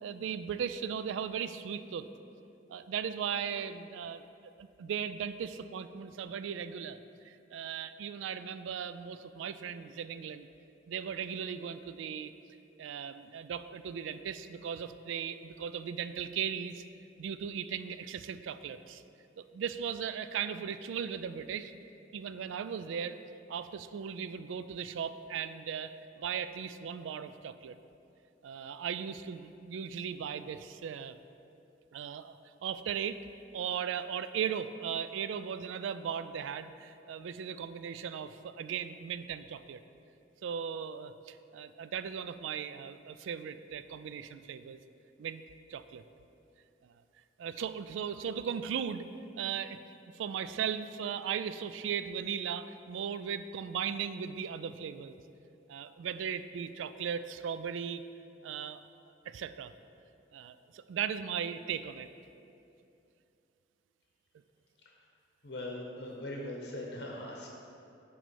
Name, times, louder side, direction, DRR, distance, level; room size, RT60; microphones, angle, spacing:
voice 1, 0.0-2.1 2.7-4.2 4.6-7.0 7.2-10.5 10.9-12.3 12.8-16.8 17.2-19.0 19.4-21.7 22.1-23.2 23.5-27.8 28.4-31.2 31.9-33.2 33.5-39.8 40.4-44.8 45.2-45.4 45.7-46.0 47.4-49.1 49.4-49.8 50.1-55.2 55.7-58.0 58.4-58.8 59.3-59.7 60.3-62.1, right 7 dB, 90° right, 12 dB, 0.3 m, -37 dB
voice 2, 65.4-67.5, left 1 dB, 65° left, -1 dB, 0.8 m, -40 dB
9.0 x 3.1 x 6.2 m, 2.7 s
head